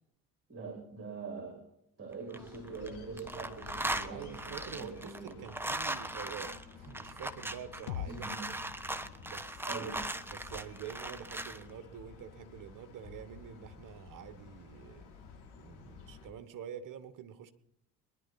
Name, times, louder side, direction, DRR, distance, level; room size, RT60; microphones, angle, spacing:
voice 1, 0.5-1.6 2.0-5.4 8.1-8.4 9.7-10.0, right 4 dB, 25° right, 1 dB, 3.9 m, -43 dB
sound 1, 2.1-2.9 3.2-11.6, right 1 dB, 5° right, 1.2 m, -39 dB
sound 2, 2.3-16.3, left 5 dB, 55° left, 5.6 m, -53 dB
voice 2, 4.1-8.4 9.2-9.8 10.2-15.0 15.6-17.5, right 8 dB, 40° right, 9 dB, 1.5 m, -47 dB
sound 3, 7.9-11.7, left 10 dB, 75° left, 0.9 m, -47 dB
23.0 x 11.0 x 4.1 m, 0.77 s
hypercardioid pair, 55°, 46 cm